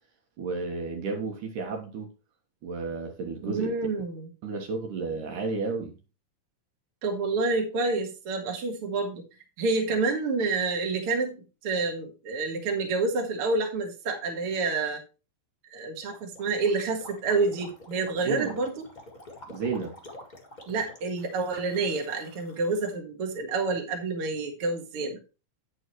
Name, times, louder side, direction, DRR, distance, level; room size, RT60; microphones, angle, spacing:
voice 1, 0.4-2.1 2.6-3.7 4.4-5.9 18.2-18.6 19.5-19.9, right 4 dB, 65° right, 2.7 m, -32 dB
voice 2, 3.4-4.3 7.0-9.2 9.6-15.0 15.6-18.7 20.7-25.2, right 3 dB, 45° right, 2.2 m, -28 dB
Gurgling, 16.0-22.9, left 1 dB, 35° left, 0.7 m, -47 dB
9.0 x 7.9 x 3.1 m
omnidirectional pair, 4.1 m